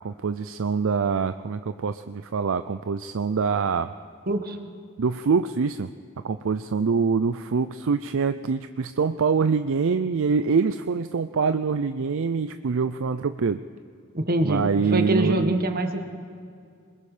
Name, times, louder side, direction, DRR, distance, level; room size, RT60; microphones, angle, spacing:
voice 1, 0.0-3.9 5.0-5.9 6.2-13.6 14.4-15.6, right 5 dB, 65° right, 10 dB, 0.5 m, -25 dB
voice 2, 4.3-4.6 14.1-16.0, right 1 dB, 45° right, 6 dB, 1.5 m, -24 dB
26.5 x 21.0 x 5.0 m, 2.3 s
head